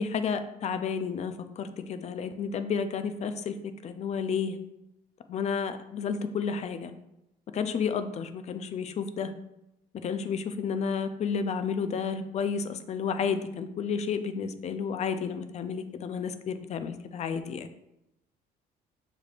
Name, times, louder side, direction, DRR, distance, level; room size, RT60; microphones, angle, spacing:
voice 1, 0.0-4.6 5.3-6.9 7.5-9.3 9.9-17.7, left 6 dB, 40° left, 10 dB, 0.4 m, -31 dB
6.6 x 3.2 x 2.4 m, 0.87 s
cardioid pair, 110°, 17 cm